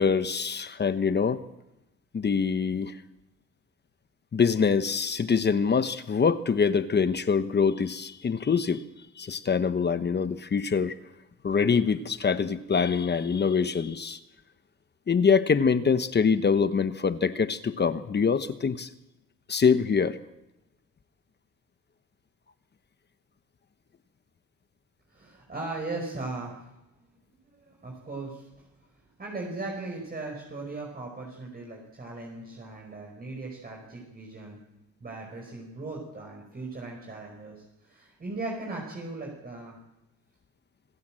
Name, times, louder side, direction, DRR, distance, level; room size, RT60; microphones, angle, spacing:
voice 1, 0.0-1.4 2.1-2.9 4.3-8.8 9.2-10.9 11.4-14.2 15.1-18.9 19.5-20.2, left 6 dB, 35° left, 12 dB, 1.1 m, -24 dB
voice 2, 25.1-26.7 27.5-28.5 29.2-34.6 35.0-39.8, right 2 dB, 30° right, 0 dB, 5.3 m, -38 dB
26.5 x 14.0 x 7.6 m, 0.94 s
cardioid pair, 90°, 30 cm